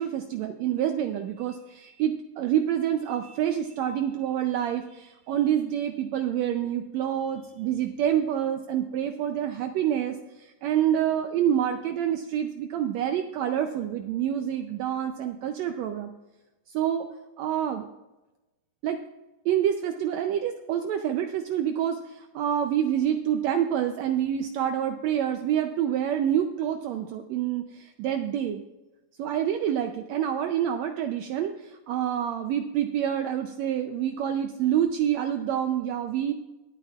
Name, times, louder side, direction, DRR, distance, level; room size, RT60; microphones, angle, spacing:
voice 1, 0.0-16.1 16.7-17.1 17.4-17.9 18.8-19.0 19.4-28.6 29.2-36.3, right 10 dB, 90° right, 6 dB, 1.5 m, -27 dB
24.0 x 9.1 x 2.4 m, 1.1 s
omnidirectional pair, 3.8 m